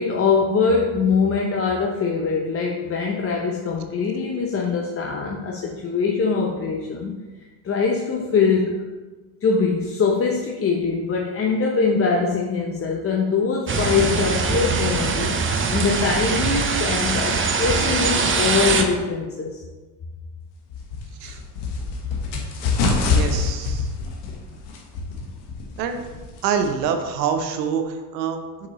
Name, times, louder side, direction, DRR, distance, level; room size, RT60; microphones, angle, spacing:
voice 1, 0.0-7.1 7.6-8.8 9.4-15.4 15.7-19.6, left 5 dB, 30° left, 0 dB, 0.7 m, -22 dB
sound 1, 13.7-18.8, right 4 dB, 25° right, 0.7 m, -22 dB
sound 2, 20.7-26.8, left 4 dB, 75° left, 1.4 m, -26 dB
voice 2, 23.1-23.9 25.8-26.0 26.4-28.7, right 6 dB, 90° right, 7 dB, 0.8 m, -26 dB
7.0 x 5.1 x 3.1 m, 1.3 s
supercardioid pair, 80°, 48 cm